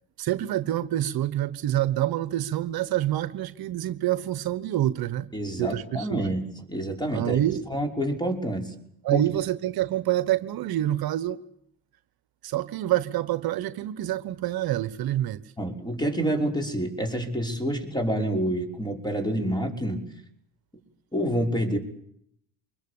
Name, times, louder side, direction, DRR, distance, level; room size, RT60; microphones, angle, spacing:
voice 1, 0.2-5.3 5.6-6.3 7.1-7.6 9.0-11.4 12.4-15.4, right 13 dB, 60° right, 14 dB, 1.1 m, -27 dB
voice 2, 5.3-7.4 7.7-8.7 9.1-9.2 15.6-20.1 21.1-21.8, right 1 dB, 10° left, 4 dB, 5.8 m, -28 dB
24.5 x 21.5 x 8.7 m, 0.72 s
supercardioid pair, 70°, 41 cm